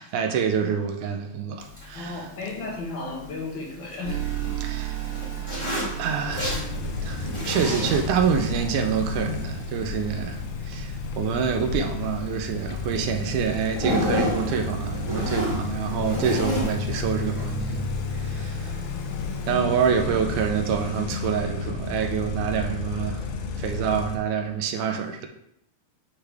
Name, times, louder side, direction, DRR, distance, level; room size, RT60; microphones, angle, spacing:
voice 1, 0.0-2.3 4.6-5.0 6.0-6.7 7.0-17.9 18.1-18.8 19.5-23.2 23.6-25.3, right 7 dB, 80° right, 2.1 m, -27 dB
Zipper (clothing), 1.6-19.5, equal, 15° left, 1.7 m, -34 dB
voice 2, 1.9-4.2 5.4-5.5 18.8-19.7, left 3 dB, 50° left, 1.7 m, -35 dB
sound 1, 4.0-8.3, right 11 dB, 60° right, 3.0 m, -33 dB
sound 2, 6.3-24.2, left 4 dB, 85° left, 2.1 m, -31 dB
9.7 x 3.5 x 3.4 m
omnidirectional pair, 3.5 m